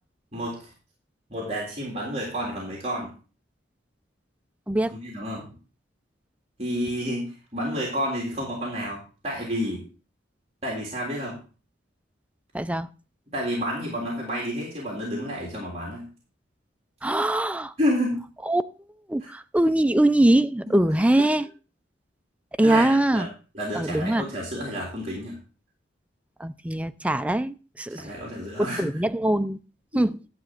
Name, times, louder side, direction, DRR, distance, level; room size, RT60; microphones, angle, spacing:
voice 1, 1.3-3.1 5.0-5.5 6.6-9.8 10.6-11.4 13.3-16.0 17.8-18.2 22.6-23.3 23.5-25.4 27.9-28.9 29.9-30.0, equal, 35° right, 3.4 m, -30 dB
voice 2, 12.5-12.9 17.0-17.7 18.5-18.6 19.1-21.5 22.6-23.3 23.7-24.3 26.4-28.1 28.6-29.6 29.9-30.1, right 1 dB, 5° right, 0.4 m, -22 dB
11.5 x 4.0 x 7.8 m
head